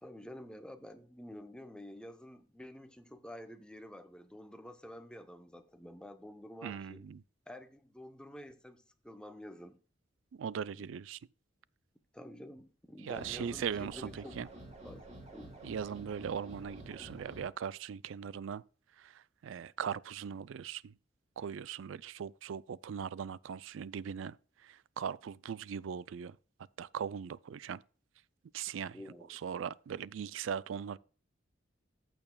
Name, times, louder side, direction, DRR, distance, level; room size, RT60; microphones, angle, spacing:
voice 1, 0.0-7.0 7.5-9.8 12.1-14.4 14.8-15.0 15.3-15.5 28.9-29.4, left 1 dB, 5° left, 0.7 m, -49 dB
voice 2, 6.6-7.2 10.3-11.2 13.0-14.1 14.4-14.5 15.6-18.6 19.0-19.1 19.4-20.9 21.4-24.3 24.6-26.4 26.8-27.8 28.5-29.0 29.3-31.0, right 7 dB, 80° right, 0.4 m, -39 dB
sound 1, 13.1-17.5, right 1 dB, 35° right, 2.5 m, -49 dB
14.0 x 6.8 x 2.3 m
head